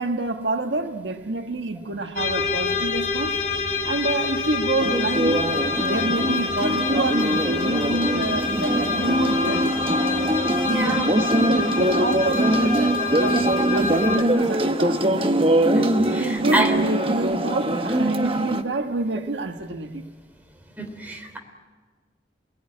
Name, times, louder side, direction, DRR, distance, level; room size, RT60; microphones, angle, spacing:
voice 1, 0.0-3.4 3.8-5.5 5.8-9.9 10.6-15.1 16.0-20.1, right 2 dB, 90° right, 1.3 m, -28 dB
sound 1, 2.2-14.2, left 4 dB, 55° left, 2.8 m, -27 dB
sound 2, 4.8-18.6, right 1 dB, 30° right, 1.2 m, -23 dB
voice 2, 10.7-11.1 15.7-16.7 20.8-21.4, right 1 dB, 10° right, 3.1 m, -27 dB
29.0 x 20.0 x 9.7 m
head